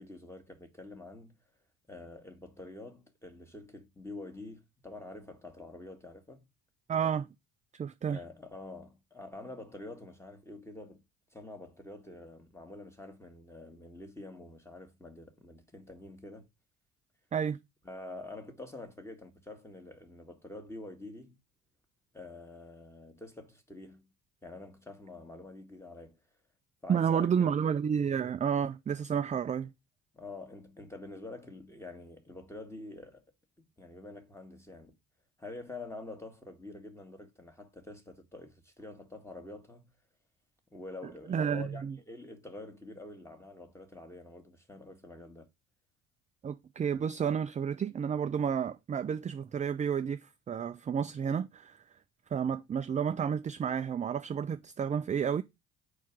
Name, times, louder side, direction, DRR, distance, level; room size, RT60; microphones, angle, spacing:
voice 1, 0.0-1.4 1.9-6.5 8.0-11.0 11.3-16.5 17.8-21.4 22.1-24.1 24.4-26.2 26.8-27.5 29.2-29.4 30.1-33.3 33.6-35.0 35.4-39.9 40.7-45.5, left 2 dB, 5° left, 1.8 m, -47 dB
voice 2, 6.9-7.3 7.7-8.2 17.3-17.6 26.9-29.7 41.3-42.0 46.4-51.8 52.3-55.4, right 7 dB, 20° right, 0.4 m, -31 dB
4.8 x 4.4 x 5.9 m
hypercardioid pair, 60°, 38 cm